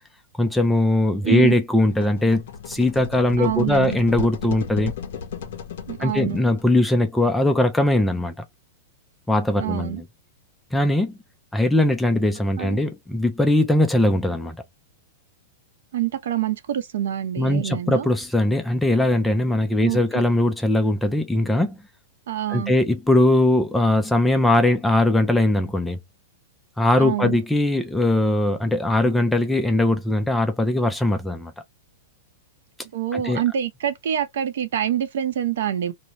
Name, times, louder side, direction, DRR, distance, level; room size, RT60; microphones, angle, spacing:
voice 1, 0.4-4.9 6.0-8.3 9.3-10.0 10.7-11.2 11.5-14.6 17.4-21.8 22.5-26.0 26.8-31.5 33.1-33.4, left 1 dB, 5° left, 0.4 m, -20 dB
voice 2, 1.2-1.5 3.4-4.0 5.9-6.4 9.6-10.0 12.6-12.8 15.9-18.1 19.8-20.0 22.3-22.8 27.0-27.4 32.9-35.9, right 10 dB, 70° right, 0.6 m, -26 dB
sound 1, 1.8-6.7, left 6 dB, 60° left, 0.6 m, -35 dB
2.7 x 2.1 x 2.9 m
supercardioid pair, 165°, 0 cm